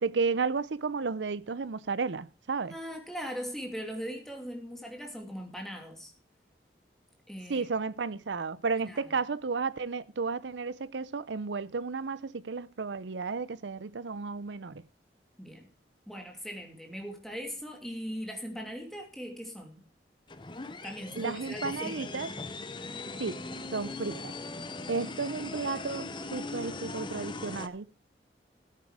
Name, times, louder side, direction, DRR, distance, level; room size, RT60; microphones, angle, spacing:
voice 1, 0.0-2.7 7.5-14.8 21.1-22.3 23.2-23.4 23.7-24.3 24.9-27.9, right 4 dB, 90° right, 0.6 m, -33 dB
voice 2, 2.7-6.1 7.3-7.7 8.9-9.1 15.4-15.7 16.1-19.8 20.8-22.1, equal, ahead, 2.7 m, -40 dB
sound 1, 20.3-27.7, left 3 dB, 25° left, 0.8 m, -40 dB
13.5 x 9.6 x 5.0 m
head